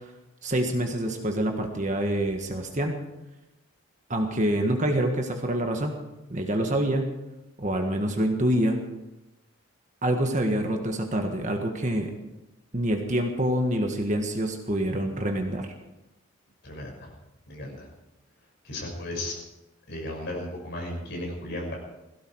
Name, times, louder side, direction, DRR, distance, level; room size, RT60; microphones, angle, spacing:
voice 1, 0.4-3.0 4.1-5.9 6.3-7.1 7.6-8.8 10.0-12.1 12.7-15.7, right 1 dB, 35° right, 3 dB, 1.7 m, -26 dB
voice 2, 16.6-17.1 17.5-17.9 18.6-19.4 19.9-21.8, left 1 dB, 50° left, -1 dB, 6.0 m, -35 dB
18.0 x 16.0 x 4.8 m, 0.98 s
head